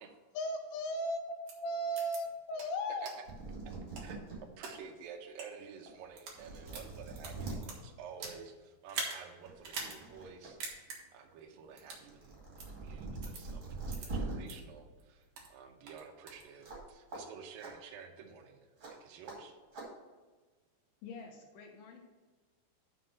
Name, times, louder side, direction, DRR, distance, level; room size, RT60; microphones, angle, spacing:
voice 1, 0.3-1.2 1.5-3.1, equal, 85° left, 5 dB, 2.8 m, -35 dB
sound 1, 1.5-1.6 2.0-2.2 2.6-2.7 3.1-3.2 3.7-4.7 5.3-5.5 6.0-6.4 6.7-8.4 8.9-9.2 9.6-10.0 10.3-10.4 10.6-11.0 11.8-12.0 12.6-12.7 13.2-13.4 13.9-14.1 14.5-14.6 15.0-15.5 15.9-16.4, right 4 dB, 60° right, 1.6 m, -42 dB
sound 2, 3.0-3.1 3.2-4.4 4.9-5.0 5.9-6.0 6.3-7.6 8.9-9.0 9.4-10.5 10.8-14.3 16.6-16.8 17.1-17.2 17.6-17.7 18.8-18.9 19.3-19.4 19.7-19.9, right 3 dB, 35° right, 2.5 m, -43 dB
voice 2, 4.6-19.6, right 6 dB, 80° right, 2 dB, 2.1 m, -51 dB
voice 3, 21.0-22.0, left 5 dB, 70° left, 1 dB, 2.9 m, -48 dB
6.4 x 5.9 x 6.6 m, 1.3 s
omnidirectional pair, 5.0 m